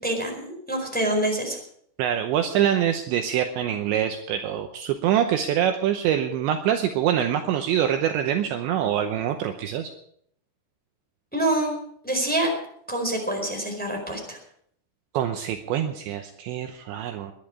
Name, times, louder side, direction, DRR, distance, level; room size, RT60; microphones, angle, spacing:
voice 1, 0.0-1.6 11.3-11.7 12.0-12.5 12.9-14.4, right 1 dB, ahead, 1 dB, 3.8 m, -26 dB
voice 2, 2.0-9.9 15.1-17.3, right 10 dB, 75° right, 6 dB, 2.9 m, -25 dB
21.5 x 11.0 x 4.9 m, 0.66 s
omnidirectional pair, 5.8 m